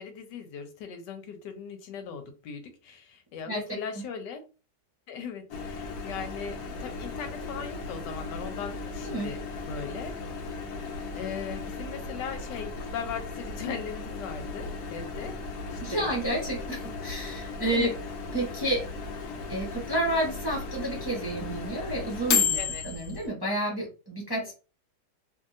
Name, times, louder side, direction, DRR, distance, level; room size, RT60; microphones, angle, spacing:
voice 1, 0.0-4.4 5.1-9.4 9.7-10.1 10.6-15.4 15.7-16.1 17.7-17.9 22.5-22.8 24.4-24.5, left 6 dB, 90° left, 7 dB, 1.3 m, -38 dB
Microwave oven, 5.5-23.3, left 5 dB, 70° left, 1.1 m, -35 dB
voice 2, 15.8-17.9 18.3-18.8 19.5-22.6 22.8-24.5, right 1 dB, 20° right, -4 dB, 0.6 m, -30 dB
2.7 x 2.7 x 2.5 m, 0.33 s
omnidirectional pair, 1.8 m